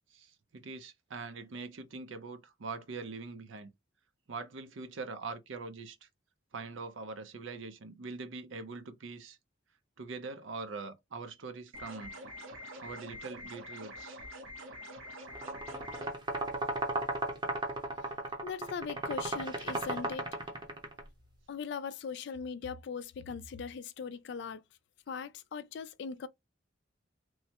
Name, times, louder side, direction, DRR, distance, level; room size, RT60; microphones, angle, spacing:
voice 1, 0.1-3.7 4.3-6.1 6.5-9.4 10.0-12.2 12.8-14.2, right 4 dB, 75° right, 0.6 m, -43 dB
sound 1, 11.7-16.1, equal, 90° right, 0.9 m, -46 dB
sound 2, 15.3-21.0, right 2 dB, 25° right, 0.6 m, -35 dB
voice 2, 18.4-20.3 21.5-24.6 25.1-26.3, left 6 dB, 60° left, 0.3 m, -40 dB
3.1 x 2.1 x 2.8 m
head